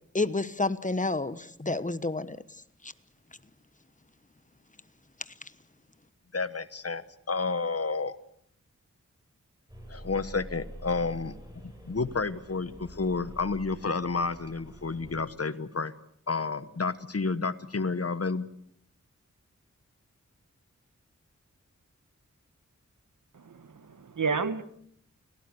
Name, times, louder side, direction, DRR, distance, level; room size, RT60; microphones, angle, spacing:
voice 1, 0.1-2.4 2.8-2.9, left 2 dB, 25° left, 1.2 m, -29 dB
voice 2, 6.3-8.2 9.9-11.4 11.6-15.9 16.3-18.5, left 4 dB, 50° left, 1.3 m, -30 dB
sound 1, 9.7-15.2, equal, 15° right, 7.7 m, -46 dB
voice 3, 23.3-24.6, right 5 dB, 85° right, 1.5 m, -31 dB
30.0 x 17.5 x 8.0 m
wide cardioid pair, 85°, 30 cm